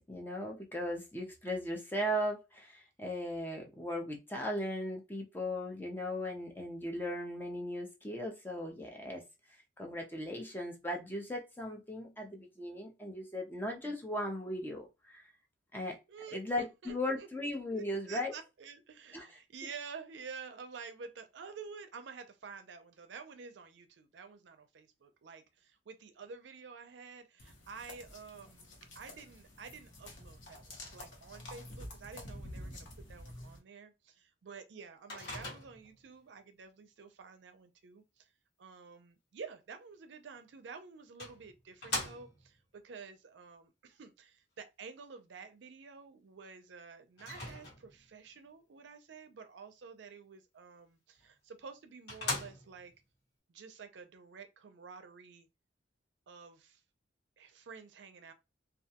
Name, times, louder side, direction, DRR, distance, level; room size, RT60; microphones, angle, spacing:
voice 1, 0.1-9.2 9.8-15.2 15.7-16.0 16.3-18.3 19.1-19.3, left 1 dB, 10° left, 0.6 m, -37 dB
voice 2, 16.1-17.3 17.7-38.3 38.6-52.9 53.5-55.5 56.3-56.8 57.4-58.3, right 5 dB, 70° right, 0.5 m, -50 dB
sound 1, 27.4-33.6, left 1 dB, 80° left, 0.9 m, -49 dB
Microwave oven, 35.1-36.0 40.3-40.4 41.2-42.6 47.2-48.1 51.2-51.3 51.7-51.8 52.1-52.9, left 2 dB, 65° left, 1.2 m, -40 dB
2.3 x 2.2 x 2.8 m
head